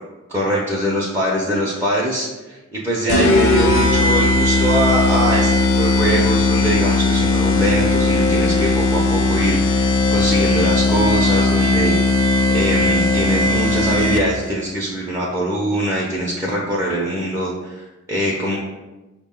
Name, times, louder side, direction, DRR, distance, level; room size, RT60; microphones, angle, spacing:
voice 1, 0.3-12.3 12.5-18.6, right 1 dB, 10° right, -6 dB, 0.5 m, -22 dB
sound 1, 3.1-14.5, left 3 dB, 70° left, 0.5 m, -17 dB
5.9 x 2.1 x 3.6 m, 1.1 s
head